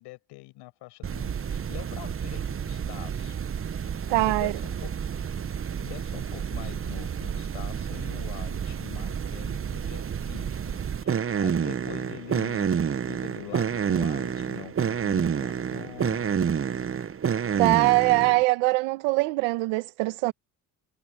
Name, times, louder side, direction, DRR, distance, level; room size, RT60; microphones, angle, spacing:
voice 1, 0.0-3.3 4.1-4.9 5.8-12.7 13.1-16.3, left 21 dB, 85° left, 6.6 m, -44 dB
sound 1, 1.0-18.4, right 7 dB, 30° right, 1.0 m, -29 dB
voice 2, 4.1-4.5 17.6-20.3, right 23 dB, 90° right, 1.3 m, -22 dB
supercardioid pair, 70°, 40 cm